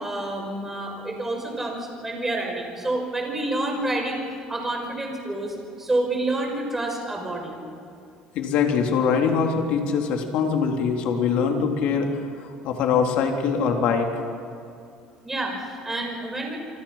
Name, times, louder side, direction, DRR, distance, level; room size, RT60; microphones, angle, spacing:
voice 1, 0.0-7.6 15.2-16.6, right 2 dB, 15° right, 2 dB, 6.0 m, -28 dB
voice 2, 8.3-14.1, left 6 dB, 65° left, 2 dB, 3.6 m, -23 dB
28.0 x 25.0 x 5.8 m, 2.4 s
cardioid pair, 130°, 2 cm